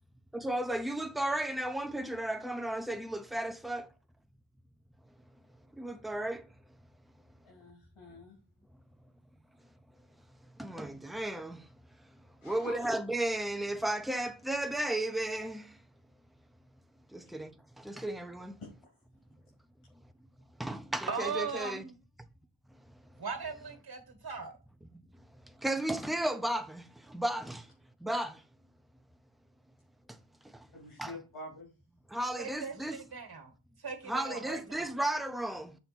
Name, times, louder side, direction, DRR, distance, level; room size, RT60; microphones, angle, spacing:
voice 1, 0.3-3.9 5.8-6.5 10.6-11.7 12.4-15.8 17.1-18.6 20.6-21.8 25.5-27.7 28.0-28.4 30.1-30.2 30.4-30.7 31.0-31.2 32.1-33.0 34.1-35.8, right 1 dB, ahead, 0.4 m, -34 dB
voice 2, 7.4-8.4 12.4-12.7 18.6-18.7 30.7-31.7, left 1 dB, 85° left, 3.0 m, -46 dB
voice 3, 21.1-21.9 23.2-24.5 32.4-33.5 33.8-34.9, right 5 dB, 50° right, 1.4 m, -39 dB
7.0 x 3.4 x 4.3 m
wide cardioid pair, 150°, 49 cm